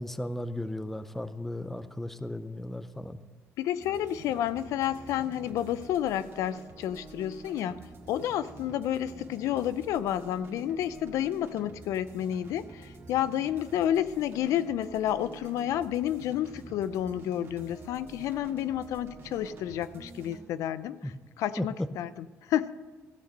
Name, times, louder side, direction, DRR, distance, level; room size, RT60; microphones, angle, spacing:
voice 1, 0.0-3.2 21.0-21.1 21.6-21.7, left 1 dB, 5° left, 13 dB, 0.4 m, -35 dB
voice 2, 3.6-7.8 8.1-22.7, left 11 dB, 90° left, 15 dB, 0.4 m, -30 dB
sound 1, 3.8-20.4, right 3 dB, 50° right, 1.8 m, -48 dB
14.5 x 6.7 x 6.5 m, 1.4 s
cardioid pair, 145°, 5 cm